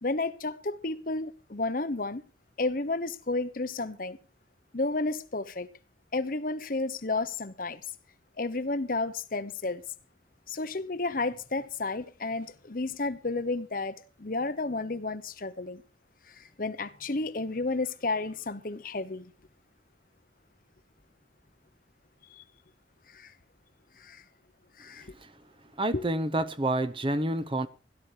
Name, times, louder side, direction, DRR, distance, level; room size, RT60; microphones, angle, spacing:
voice 1, 0.0-2.2 2.6-4.2 4.7-5.7 6.1-7.8 8.4-9.8 10.5-15.8 16.4-19.2 22.3-22.4 23.1-23.3 24.0-24.2 24.8-25.1 25.9-26.0, left 3 dB, 50° left, 1.0 m, -32 dB
voice 2, 25.8-27.7, right 1 dB, 30° right, 0.8 m, -28 dB
17.0 x 11.0 x 5.0 m
head